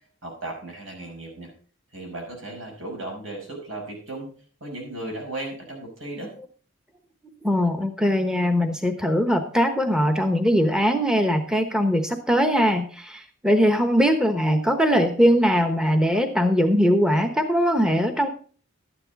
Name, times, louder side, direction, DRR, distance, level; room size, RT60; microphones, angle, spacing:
voice 1, 0.2-1.5 1.9-4.3 4.6-6.3, right 2 dB, 80° right, 1 dB, 5.6 m, -35 dB
voice 2, 7.4-18.3, equal, 5° right, 7 dB, 1.0 m, -21 dB
12.5 x 9.8 x 4.0 m, 0.41 s
head